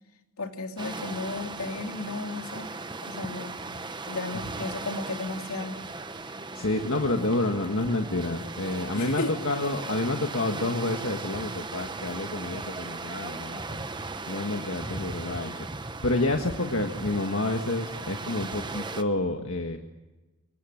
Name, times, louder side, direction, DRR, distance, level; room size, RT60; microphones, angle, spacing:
voice 1, 0.4-2.7 3.0-3.6 4.1-5.8 8.9-9.3, left 3 dB, 85° left, 4 dB, 2.9 m, -34 dB
sound 1, 0.8-19.0, right 3 dB, 20° right, 1.0 m, -37 dB
voice 2, 6.5-13.9 14.3-19.8, left 2 dB, 65° left, 4 dB, 1.7 m, -29 dB
26.5 x 22.0 x 8.0 m, 1.1 s
head